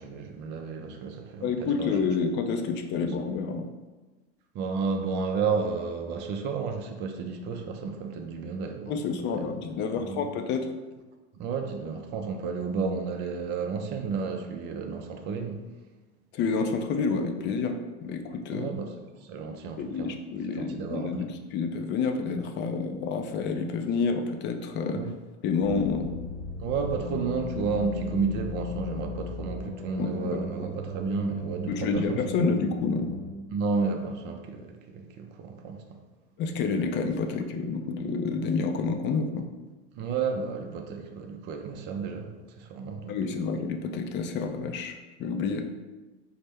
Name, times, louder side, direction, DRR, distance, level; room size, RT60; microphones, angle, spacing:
voice 1, 0.0-2.1 4.5-9.6 10.0-10.2 11.3-15.7 18.5-18.9 19.2-20.2 20.6-21.3 24.9-25.1 26.6-32.2 33.5-36.0 39.9-43.1, right 5 dB, 35° right, 4 dB, 0.4 m, -32 dB
voice 2, 1.4-3.7 8.9-10.8 16.3-18.7 19.8-25.0 25.4-26.1 30.0-30.4 31.7-33.2 36.4-39.5 43.1-45.6, left 5 dB, 35° left, 5 dB, 0.4 m, -29 dB
sound 1, 25.6-33.3, left 2 dB, 20° left, 1.0 m, -37 dB
4.2 x 2.1 x 3.3 m, 1.2 s
hypercardioid pair, 105°, 33 cm